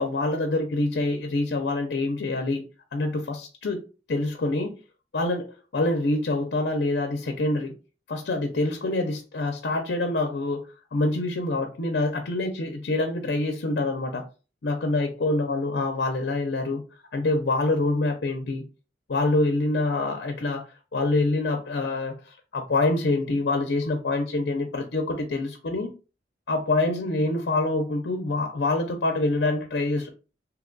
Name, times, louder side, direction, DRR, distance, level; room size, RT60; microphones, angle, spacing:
voice 1, 0.0-2.7 2.9-4.7 5.1-7.7 8.1-14.2 14.6-16.8 17.1-18.6 19.1-20.6 20.9-25.9 26.5-30.1, left 2 dB, 65° left, 0.5 m, -26 dB
2.8 x 2.3 x 3.8 m
head